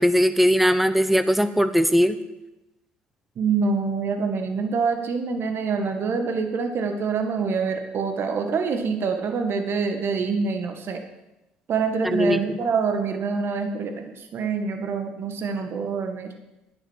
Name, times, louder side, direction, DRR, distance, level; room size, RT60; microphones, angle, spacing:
voice 1, 0.0-2.2 12.0-12.6, equal, ahead, 11 dB, 1.1 m, -20 dB
voice 2, 3.4-11.0 11.7-16.3, right 5 dB, 55° right, 6 dB, 1.8 m, -26 dB
11.0 x 9.7 x 6.4 m, 0.93 s
hypercardioid pair, 60°, 5 cm